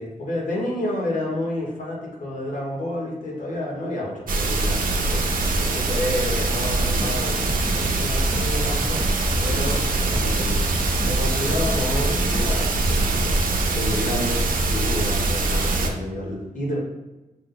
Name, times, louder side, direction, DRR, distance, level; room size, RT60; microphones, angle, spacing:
voice 1, 0.0-9.1 9.4-16.8, left 1 dB, 65° left, -3 dB, 1.4 m, -30 dB
sound 1, 4.3-15.9, right 2 dB, 80° right, 0.6 m, -23 dB
sound 2, 6.7-13.3, equal, 5° right, 0.3 m, -31 dB
6.2 x 2.2 x 3.9 m, 1.1 s
wide cardioid pair, 105°, 14 cm